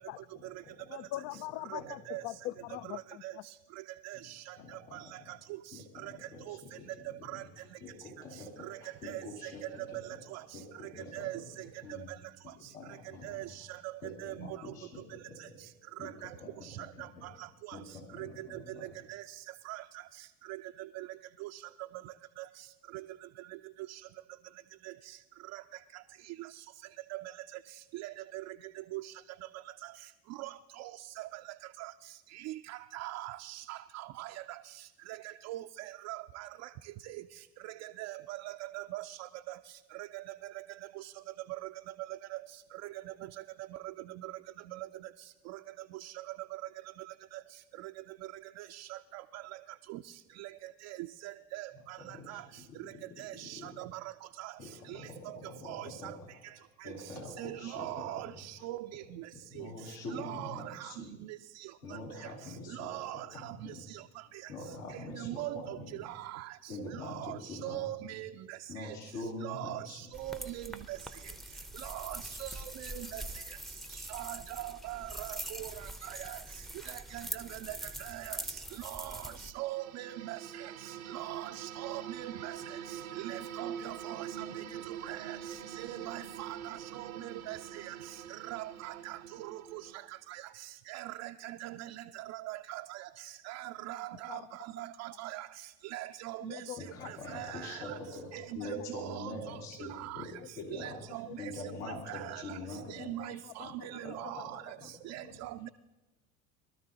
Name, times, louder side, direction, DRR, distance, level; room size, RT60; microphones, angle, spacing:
voice 1, 0.3-0.9 1.8-2.2 4.2-4.3 4.6-5.3 5.7-7.5 7.8-12.1 12.4-13.6 14.0-15.6 16.0-17.3 17.7-18.9 51.7-53.8 54.6-56.3 56.8-58.4 59.5-61.1 61.8-63.8 64.5-66.0 66.7-67.8 68.7-70.1 96.8-100.3 100.6-105.4, left 2 dB, 70° left, -2 dB, 2.9 m, -45 dB
voice 2, 0.9-3.4 94.3-94.5 96.4-97.1 101.3-101.4 101.9-102.0 102.9-103.8 104.2-104.4, left 16 dB, 40° left, 20 dB, 0.4 m, -43 dB
voice 3, 4.0-4.4 4.9-5.0 6.5-6.6 7.3-7.4 9.0-9.5 10.3-10.4 11.1-11.4 13.2-13.9 14.2-14.6 16.0-16.3 16.6-16.8 18.2-18.6 19.1-19.2 19.7-19.8 20.9-21.1 21.4-21.5 22.4-22.5 23.9-24.0 25.5-25.6 27.1-27.2 27.9-28.4 28.9-29.1 30.4-30.5 30.8-30.9 31.2-31.3 31.8-31.9 32.3-34.3 35.5-35.6 36.1-36.5 37.6-39.2 39.5-39.6 40.1-40.2 44.7-44.9 46.0-46.1 47.3-47.4 48.6-49.2 49.9-50.0 50.4-50.5 50.8-51.0 51.2-52.0 52.3-52.4 53.2-54.0 54.4-54.5 54.9-55.1 55.6-55.9 57.4-59.0 59.6-59.7 60.1-60.9 62.7-64.0 65.2-66.5 67.0-68.9 69.4-71.0 71.8-73.2 74.1-75.7 76.1-76.4 77.1-78.4 78.8-80.7 81.1-82.5 83.2-84.3 85.0-85.4 85.8-87.9 88.5-89.8 90.3-90.4 90.9-93.0 93.4-94.4 94.8-95.5 95.9-96.6 97.0-98.0 98.3-100.3 100.7-101.5 102.1-102.6 102.9-104.7 105.1-105.7, right 16 dB, 40° right, 6 dB, 0.4 m, -41 dB
sound 1, 70.1-79.5, right 1 dB, ahead, 0.7 m, -43 dB
sound 2, 79.5-90.0, right 9 dB, 80° right, 0.8 m, -44 dB
22.5 x 13.0 x 2.8 m, 1.2 s
figure-of-eight pair, 65°, 41 cm